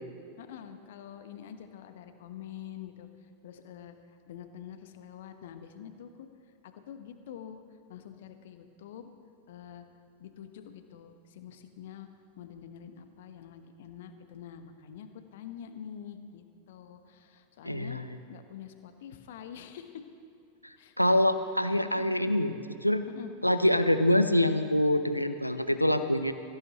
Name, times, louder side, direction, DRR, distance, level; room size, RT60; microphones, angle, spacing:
voice 1, 0.4-6.3 6.6-7.6 7.9-9.2 9.5-9.9 10.2-12.1 12.4-18.0 18.3-20.0 20.8-20.9 21.9-22.5 23.1-23.3 24.1-24.2, left 9 dB, 55° left, 8 dB, 1.1 m, -46 dB
voice 2, 17.6-18.0 21.0-22.5 22.8-23.0 23.4-26.3, left 1 dB, 90° left, 10 dB, 0.7 m, -25 dB
23.5 x 15.0 x 3.0 m, 2.5 s
figure-of-eight pair, 90°, 0 cm